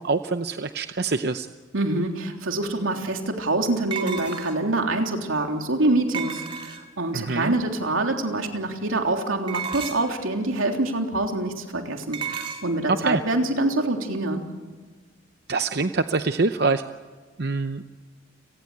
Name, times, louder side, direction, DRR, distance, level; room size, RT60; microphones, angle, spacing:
voice 1, 0.0-1.5 7.1-7.5 12.9-13.2 15.5-16.8 17.4-17.8, right 3 dB, 50° right, 9 dB, 0.7 m, -25 dB
voice 2, 1.7-14.4, right 2 dB, 85° right, 3 dB, 3.4 m, -25 dB
sound 1, 2.3-2.4 3.9-4.7 6.1-7.0 9.5-10.2 12.1-12.7, right 7 dB, 25° right, 2.1 m, -32 dB
30.0 x 19.0 x 8.6 m, 1.4 s
head